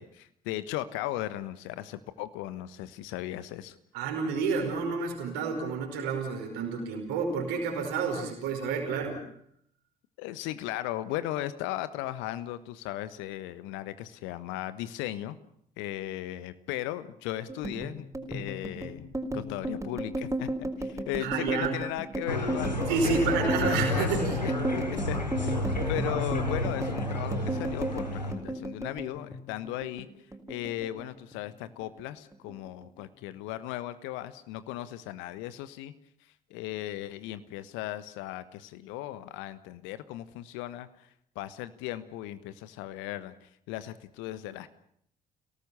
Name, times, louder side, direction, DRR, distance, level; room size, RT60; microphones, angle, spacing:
voice 1, 0.0-3.8 10.2-15.4 15.8-24.1 24.7-25.2 25.4-25.6 25.9-30.1 30.5-35.9 36.5-41.1 41.3-44.7, left 14 dB, 65° left, 14 dB, 1.3 m, -37 dB
voice 2, 3.9-9.2 21.2-21.8 22.9-24.4, right 5 dB, 65° right, 2 dB, 5.1 m, -29 dB
sound 1, 17.5-30.1 30.3-31.4 31.7-32.0 32.3-33.0, right 1 dB, 15° right, 4.4 m, -34 dB
sound 2, 22.3-28.3, left 1 dB, 90° left, 1.4 m, -31 dB
29.5 x 18.0 x 7.0 m, 0.69 s
figure-of-eight pair, 45°, 21 cm